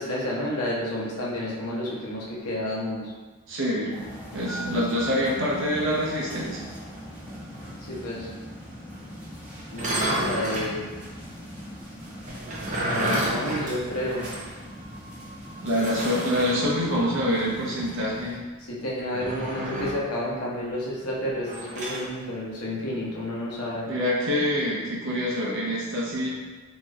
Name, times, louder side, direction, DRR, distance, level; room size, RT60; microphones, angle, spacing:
voice 1, 0.0-3.1 7.9-8.3 9.7-10.9 12.8-14.3 18.7-23.9, left 1 dB, 80° left, -5 dB, 0.8 m, -30 dB
voice 2, 3.5-4.0 4.3-6.6 15.6-18.4 23.8-26.3, equal, 60° right, -5 dB, 0.8 m, -26 dB
sound 1, 3.9-18.4, equal, 5° right, 0.9 m, -40 dB
sound 2, 9.7-10.8 12.3-14.5 14.8-14.9 15.7-16.6 19.1-20.1 21.4-22.1, right 1 dB, 35° right, 0.6 m, -30 dB
3.2 x 2.9 x 2.4 m, 1.3 s
head